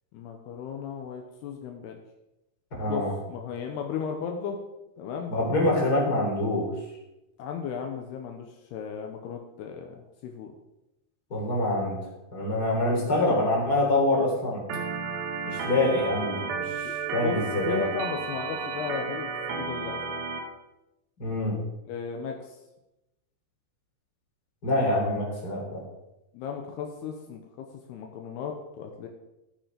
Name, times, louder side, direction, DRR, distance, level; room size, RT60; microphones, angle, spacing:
voice 1, 0.1-2.0 2.8-4.6 5.0-5.3 7.4-10.5 16.8-20.3 21.9-22.6 26.3-29.1, left 6 dB, 75° left, 3 dB, 3.0 m, -36 dB
voice 2, 2.8-3.1 5.3-6.7 11.3-12.0 12.3-14.6 15.4-17.8 21.2-21.6 24.6-25.8, left 1 dB, 25° left, -2 dB, 3.9 m, -25 dB
Organ, 14.7-20.4, right 4 dB, 80° right, 3.8 m, -33 dB
15.0 x 9.1 x 5.1 m, 0.94 s
omnidirectional pair, 4.8 m